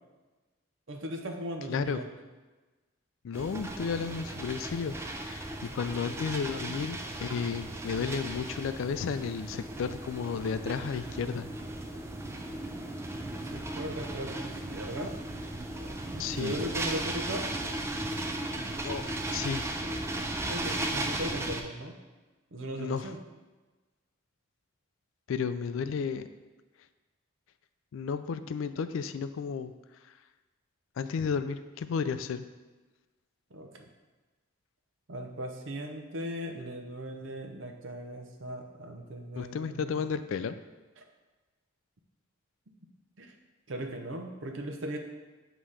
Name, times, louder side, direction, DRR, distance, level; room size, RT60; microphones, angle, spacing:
voice 1, 0.9-2.1 6.7-6.8 13.4-15.2 15.8-17.5 20.5-21.9 22.5-23.2 33.5-33.9 35.1-40.0 41.0-41.1 43.2-43.3 43.7-45.0, equal, 65° right, 4 dB, 0.7 m, -38 dB
voice 2, 1.7-2.0 3.2-11.5 16.2-16.6 18.8-19.7 22.8-23.1 25.3-26.3 27.9-29.7 31.0-32.4 39.4-40.6, left 6 dB, 70° left, 11 dB, 0.3 m, -33 dB
sound 1, 3.3-21.6, right 1 dB, 10° right, 0.3 m, -36 dB
7.5 x 3.0 x 4.8 m, 1.2 s
head